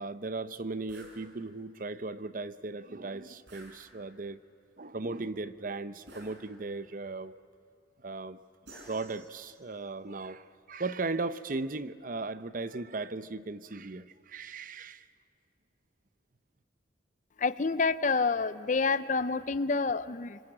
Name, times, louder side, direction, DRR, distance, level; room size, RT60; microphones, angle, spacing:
voice 1, 0.0-4.4 4.8-7.3 8.0-8.4 8.9-15.0, right 3 dB, 45° right, 0.7 m, -37 dB
sound 1, 0.9-1.2 3.5-4.3 6.1-6.9 8.7-9.8, right 1 dB, 70° right, 5.8 m, -53 dB
voice 2, 17.4-20.4, left 4 dB, 40° left, 0.6 m, -28 dB
26.0 x 25.0 x 8.8 m
head